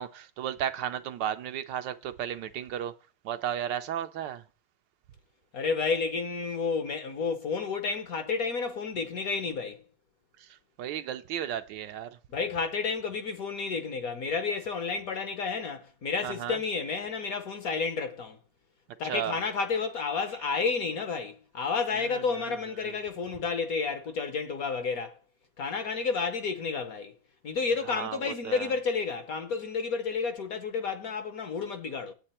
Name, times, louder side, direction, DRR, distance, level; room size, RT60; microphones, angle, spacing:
voice 1, 0.0-2.9 3.2-4.4 10.4-12.2 16.2-16.6 19.0-19.4 22.0-22.2 22.5-22.6 22.8-22.9 27.9-28.7, right 10 dB, 75° right, 1.2 m, -34 dB
voice 2, 5.5-9.8 12.3-18.4 19.0-25.2 25.6-27.1 27.4-32.1, left 5 dB, 55° left, 1.1 m, -31 dB
8.9 x 8.2 x 4.3 m
omnidirectional pair, 2.2 m